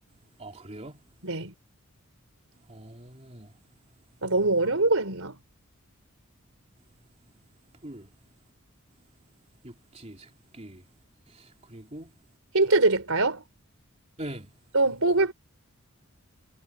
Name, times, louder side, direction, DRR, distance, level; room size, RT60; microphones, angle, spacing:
voice 1, 0.4-1.0 2.7-3.5 7.8-8.1 9.6-10.8 11.7-12.1 14.2-14.5, right 1 dB, 30° right, 3.3 m, -42 dB
voice 2, 1.2-1.5 4.2-5.4 12.5-13.4 14.7-15.3, right 2 dB, 70° right, 4.1 m, -23 dB
head